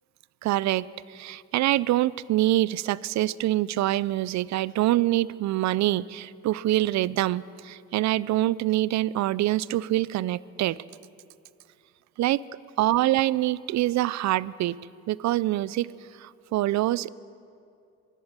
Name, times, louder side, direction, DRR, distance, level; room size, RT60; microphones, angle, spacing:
voice 1, 0.4-10.8 12.2-12.4 12.8-14.8 15.1-15.9 16.2-17.1, right 15 dB, 65° right, 21 dB, 0.4 m, -25 dB
16.0 x 11.5 x 6.7 m, 2.5 s
cardioid pair, 90°, 30 cm